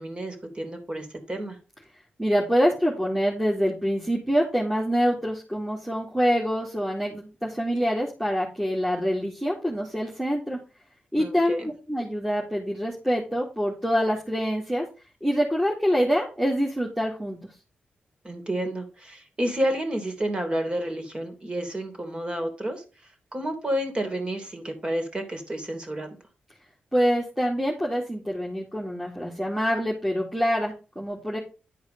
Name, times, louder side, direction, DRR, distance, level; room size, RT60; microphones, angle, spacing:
voice 1, 0.0-1.6 11.2-11.7 18.2-22.8 23.3-26.1, right 1 dB, 30° right, 5 dB, 3.3 m, -30 dB
voice 2, 2.2-10.6 11.1-14.8 15.2-17.4 26.9-31.4, equal, 5° right, -4 dB, 2.6 m, -25 dB
11.0 x 4.7 x 5.3 m, 0.32 s
cardioid pair, 80°, 3 cm